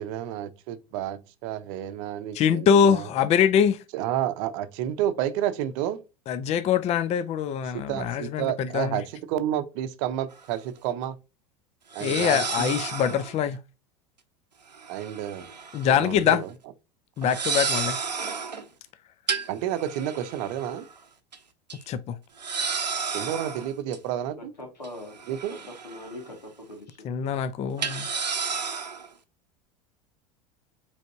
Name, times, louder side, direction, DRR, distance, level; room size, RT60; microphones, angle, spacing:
voice 1, 0.0-3.1 3.9-6.0 7.7-11.2 11.9-12.7 14.9-15.4 15.8-16.5 19.5-20.9 23.1-24.5 25.3-25.6, right 11 dB, 50° right, 0.7 m, -30 dB
voice 2, 2.3-3.8 6.3-9.0 12.0-13.6 15.7-16.4 17.2-18.0 21.9-22.2 27.0-28.1, left 8 dB, 30° left, 0.5 m, -23 dB
sound 1, 10.3-10.4 11.9-13.3 14.7-15.9 16.2-16.4 17.2-18.6 19.3-20.9 21.3-21.4 21.7-21.8 22.4-24.0 24.8-26.3 26.6-26.7 27.8-29.1, right 5 dB, 90° right, 0.7 m, -32 dB
voice 3, 24.4-27.1, left 1 dB, 85° left, 1.8 m, -42 dB
5.2 x 3.4 x 2.6 m
figure-of-eight pair, 80°, 21 cm